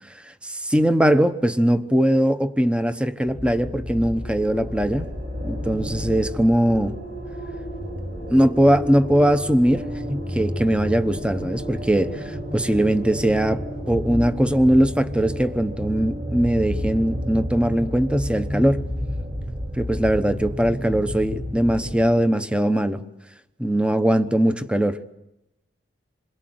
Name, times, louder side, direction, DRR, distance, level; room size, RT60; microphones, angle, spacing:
voice 1, 0.4-5.1 5.4-7.0 8.3-18.8 19.8-23.0 23.6-25.1, right 1 dB, 5° right, 10 dB, 0.9 m, -21 dB
sound 1, 3.3-22.0, equal, 65° right, 7.4 m, -31 dB
27.5 x 22.0 x 7.9 m, 0.90 s
head